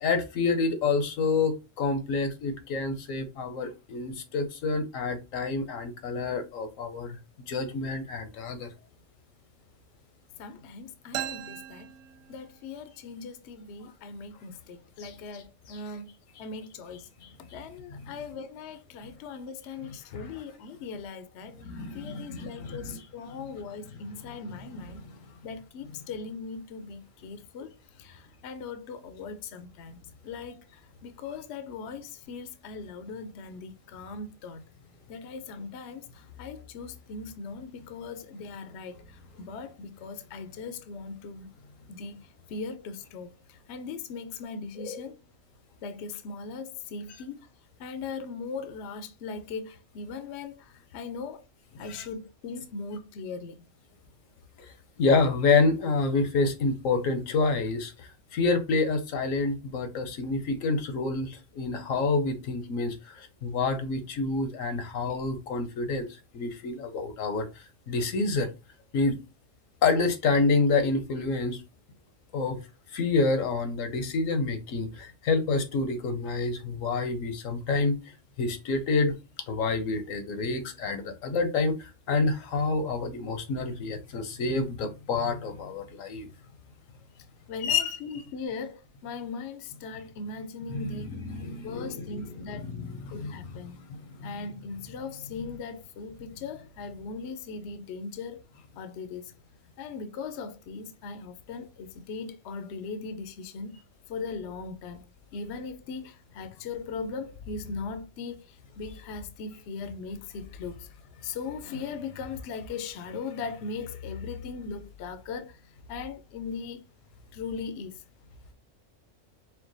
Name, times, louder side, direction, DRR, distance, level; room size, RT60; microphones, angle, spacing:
voice 1, 0.0-7.2 7.5-8.7 15.0-15.1 15.7-15.8 17.2-17.3 20.1-20.3 21.6-23.0 44.8-45.0 51.8-52.1 54.6-54.7 55.0-66.1 66.3-68.5 68.9-69.2 69.8-71.6 72.3-72.6 72.9-78.0 78.4-79.1 79.5-86.3 87.6-88.0 90.7-93.4 93.9-94.5, left 3 dB, 80° left, 1.2 m, -28 dB
voice 2, 10.4-11.9 12.3-16.1 16.4-17.1 17.5-21.5 21.9-25.0 25.4-34.6 35.1-41.5 41.9-45.1 45.8-47.5 47.8-51.5 51.7-53.6 87.5-91.1 91.6-92.7 93.1-93.9 94.2-98.4 98.8-99.3 99.8-103.8 104.1-105.1 105.3-116.8 117.3-118.0, left 4 dB, 65° left, 0.8 m, -39 dB
sound 1, 11.1-12.8, right 10 dB, 80° right, 1.0 m, -38 dB
4.5 x 2.2 x 3.9 m
omnidirectional pair, 1.3 m